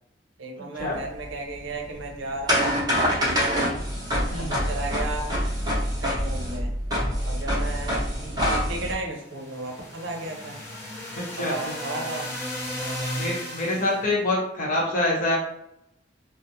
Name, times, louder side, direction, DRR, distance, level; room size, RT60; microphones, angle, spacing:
voice 1, 0.4-2.7 3.3-3.8 4.4-5.4 6.0-6.7 7.2-10.6 11.4-12.3 12.8-13.1, right 2 dB, 75° right, 2 dB, 0.6 m, -34 dB
sound 1, 0.9-8.9, equal, 20° right, 0.7 m, -26 dB
sound 2, 9.1-14.1, left 1 dB, 15° left, 0.6 m, -35 dB
voice 2, 13.1-15.4, left 2 dB, 45° left, -4 dB, 0.8 m, -25 dB
2.3 x 2.0 x 2.7 m, 0.78 s
head